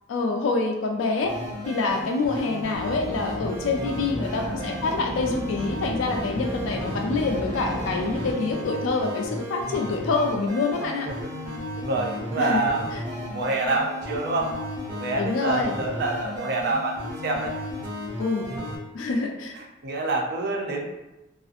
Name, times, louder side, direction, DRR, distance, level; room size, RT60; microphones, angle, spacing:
voice 1, 0.1-1.3 1.7-11.1 12.4-12.6 15.1-15.7 18.2-18.5 18.9-19.5, left 3 dB, 80° left, 2 dB, 0.4 m, -26 dB
sound 1, 1.2-18.8, left 1 dB, 30° right, 1.1 m, -34 dB
Motorcycle, 2.7-8.3, right 1 dB, 10° left, 0.5 m, -34 dB
voice 2, 4.2-4.7 11.0-11.3 11.8-14.5 14.9-17.6 19.6-20.9, right 2 dB, 60° right, 1 dB, 0.4 m, -27 dB
2.5 x 2.4 x 2.4 m, 1.0 s
head